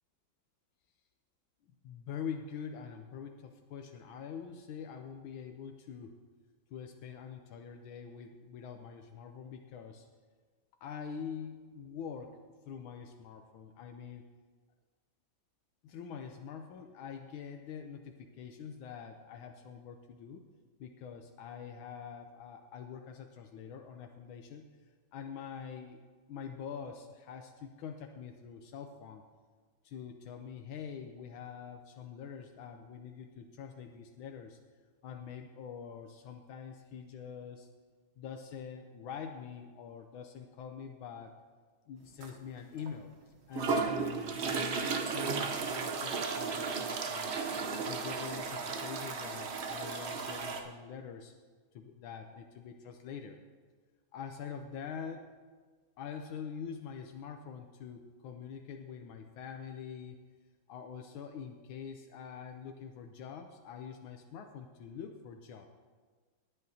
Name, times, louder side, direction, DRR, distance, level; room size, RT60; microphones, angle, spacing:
voice 1, 1.8-6.2 6.7-10.1 10.8-12.4 12.7-14.2 15.8-20.4 20.8-24.6 25.1-26.0 26.3-29.2 29.8-34.6 35.0-37.7 38.2-41.3 41.9-43.1 43.5-47.3 47.8-51.3 51.7-53.4 54.1-55.3 56.0-60.2 60.7-65.7, left 7 dB, 85° left, 4 dB, 1.5 m, -45 dB
sound 1, 42.2-42.3 42.9-43.0 43.5-50.6, right 4 dB, 60° right, 0.7 m, -34 dB
18.5 x 9.3 x 2.8 m, 1.4 s
omnidirectional pair, 2.2 m